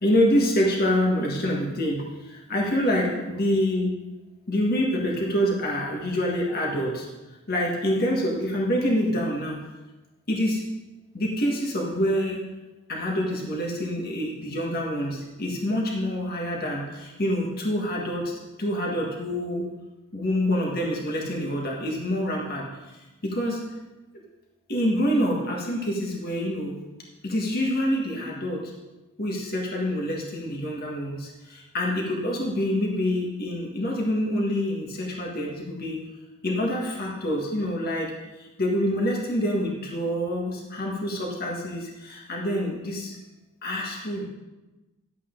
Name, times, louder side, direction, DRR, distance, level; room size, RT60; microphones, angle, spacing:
voice 1, 0.0-3.9 4.5-7.0 7.5-9.6 10.3-10.6 11.1-12.4 12.9-18.3 18.6-19.6 20.1-23.6 24.7-26.7 27.2-28.7 29.2-36.0 36.4-43.1 43.6-44.3, equal, 45° left, -2 dB, 1.7 m, -26 dB
11.0 x 8.2 x 3.8 m, 1.1 s
head